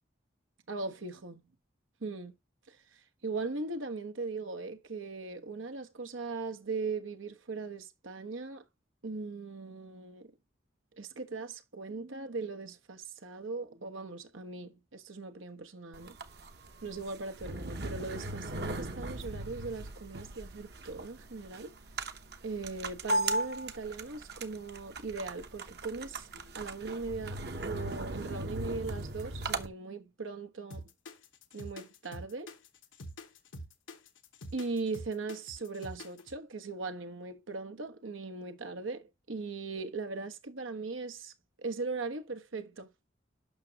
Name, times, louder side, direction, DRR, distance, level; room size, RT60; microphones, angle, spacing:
voice 1, 0.7-1.4 2.0-2.3 2.7-8.6 9.0-10.3 11.0-16.2 16.8-21.7 22.4-27.4 27.6-30.9 31.5-32.5 34.5-41.3 41.6-42.9, right 3 dB, 90° right, 1.2 m, -39 dB
sound 1, 15.9-29.7, right 2 dB, 55° right, 0.9 m, -38 dB
sound 2, 30.7-36.3, equal, 85° left, 1.2 m, -45 dB
8.4 x 6.2 x 2.9 m
head